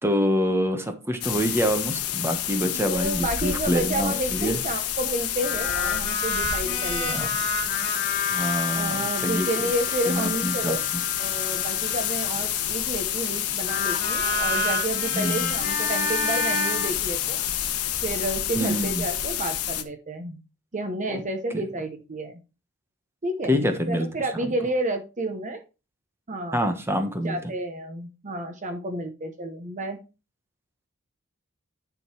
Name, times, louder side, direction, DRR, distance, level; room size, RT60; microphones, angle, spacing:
voice 1, 0.0-4.6 7.1-7.3 8.3-9.5 10.1-10.8 15.1-15.5 18.5-19.0 21.1-21.2 21.5-21.6 23.5-24.1 24.4-24.5 26.5-27.5, equal, 10° right, 6 dB, 1.1 m, -26 dB
sound 1, 1.2-19.8, left 11 dB, 80° left, 1.0 m, -28 dB
voice 2, 2.7-7.3 8.7-10.8 11.2-17.4 18.0-20.4 20.7-22.3 23.2-25.6 26.3-26.7 27.2-30.0, right 1 dB, 35° right, 5 dB, 0.9 m, -30 dB
sound 2, 5.4-12.7 13.6-16.9, left 3 dB, 35° left, 2.5 m, -30 dB
10.0 x 3.8 x 4.7 m, 0.30 s
head